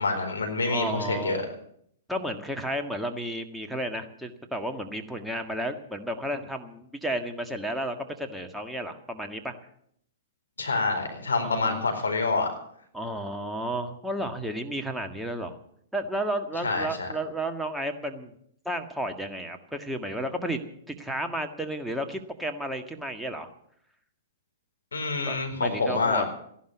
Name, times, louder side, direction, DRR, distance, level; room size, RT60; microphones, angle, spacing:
voice 1, 0.0-1.5 10.6-12.5 16.6-17.1 24.9-26.3, left 3 dB, 90° left, 5 dB, 4.4 m, -27 dB
voice 2, 0.7-1.5 2.1-9.5 11.4-11.8 12.9-15.6 15.9-18.3 18.7-20.6 20.9-23.5 25.3-26.3, right 1 dB, ahead, 3 dB, 1.8 m, -32 dB
15.0 x 11.5 x 8.1 m, 0.68 s
hypercardioid pair, 120°, 0 cm